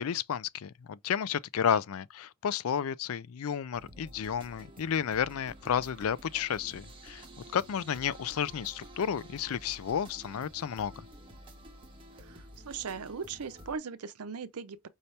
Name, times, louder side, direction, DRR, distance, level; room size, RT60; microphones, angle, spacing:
voice 1, 0.0-7.2 7.5-10.9, left 8 dB, 65° left, 0.4 m, -32 dB
sound 1, 3.7-13.8, right 1 dB, 25° right, 1.1 m, -51 dB
voice 2, 12.2-14.9, right 5 dB, 80° right, 0.6 m, -39 dB
5.4 x 2.8 x 3.3 m
head